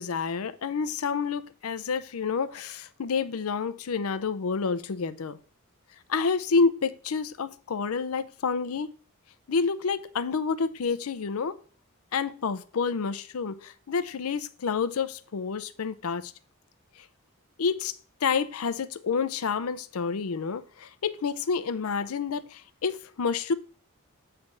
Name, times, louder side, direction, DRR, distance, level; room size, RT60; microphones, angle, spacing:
voice 1, 0.0-5.4 6.1-8.9 9.5-11.6 12.1-16.3 17.6-17.9 18.2-23.5, left 5 dB, 80° left, 0.5 m, -29 dB
8.2 x 3.4 x 6.5 m
head